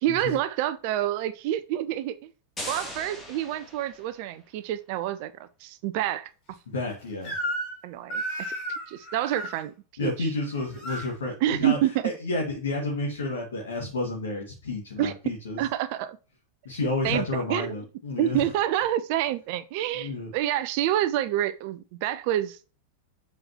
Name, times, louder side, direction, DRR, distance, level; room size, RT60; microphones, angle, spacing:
voice 1, 0.0-2.3 2.7-6.3 7.8-8.5 8.9-9.7 10.0-10.3 11.4-12.1 15.0-15.1 15.6-16.2 17.0-17.8 18.2-22.6, right 12 dB, 45° right, 0.7 m, -28 dB
sound 1, 2.6-4.4, left 1 dB, 15° left, 2.7 m, -39 dB
voice 2, 6.7-7.3 10.0-11.8 12.0-15.6 16.6-18.4 19.9-20.3, left 2 dB, 65° left, 2.3 m, -30 dB
Crying sobbing / Screech, 7.2-7.8 8.1-9.6 10.4-11.1, right 1 dB, 40° left, 4.2 m, -33 dB
7.8 x 5.7 x 3.1 m
figure-of-eight pair, 90°, 0 cm